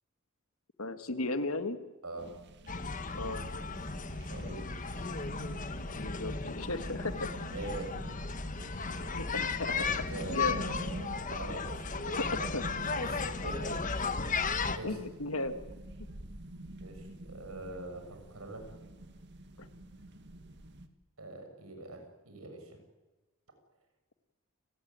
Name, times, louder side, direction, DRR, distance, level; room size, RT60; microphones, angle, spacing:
voice 1, 0.8-1.8 3.1-3.4 6.0-7.3 8.8-10.0 10.3-10.6 12.2-12.3 12.5-12.6 14.7-15.6 19.6-19.7, left 2 dB, 80° left, 9 dB, 2.0 m, -36 dB
sound 1, 2.2-20.9, right 1 dB, 55° right, 2.0 m, -48 dB
sound 2, 2.7-14.8, left 4 dB, 35° left, 1.4 m, -35 dB
voice 2, 4.2-4.7 7.5-8.1 9.7-14.2 14.7-15.0 16.8-18.7 21.2-22.8, right 2 dB, 90° right, 5 dB, 6.8 m, -43 dB
30.0 x 18.0 x 9.5 m, 1.2 s
head